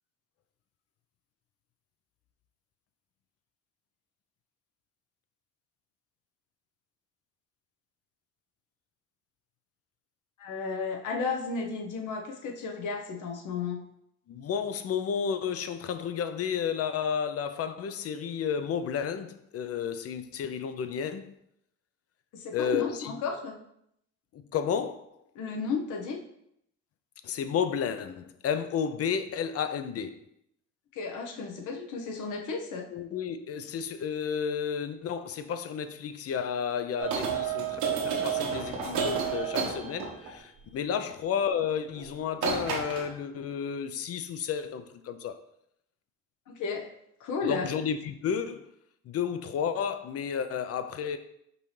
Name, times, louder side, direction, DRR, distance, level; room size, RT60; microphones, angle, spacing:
voice 1, 10.4-13.8 22.3-23.6 25.3-26.2 30.9-32.9 41.0-41.1 46.5-46.9 47.2-47.7, left 4 dB, 80° left, 0.8 m, -33 dB
voice 2, 14.3-21.3 22.5-23.2 24.3-25.1 27.2-30.2 32.9-45.4 47.5-48.7 49.1-51.2, left 7 dB, 55° left, 0.5 m, -32 dB
sound 1, 37.0-40.4 41.9-42.1 42.4-43.1, right 6 dB, 75° right, 1.0 m, -30 dB
5.3 x 2.8 x 3.2 m
cardioid pair, 90°, 30 cm